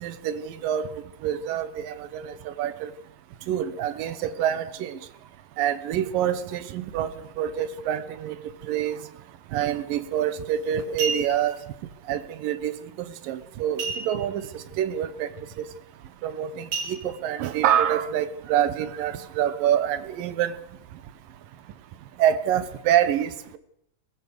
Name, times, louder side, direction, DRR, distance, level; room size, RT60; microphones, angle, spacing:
voice 1, 0.0-0.8 1.2-2.9 3.5-5.0 5.6-7.1 7.4-8.4 8.7-9.0 9.5-11.6 12.1-12.7 13.3-14.4 14.8-15.3 16.2-20.5 22.2-23.6, right 10 dB, 80° right, 14 dB, 2.9 m, -26 dB
sound 1, 10.1-10.3 10.8-11.6 13.8-14.5 14.8-14.9 15.4-15.6 16.7-17.5 18.1-18.2, right 4 dB, 45° right, 4.1 m, -32 dB
21.5 x 20.5 x 6.8 m, 0.73 s
omnidirectional pair, 3.9 m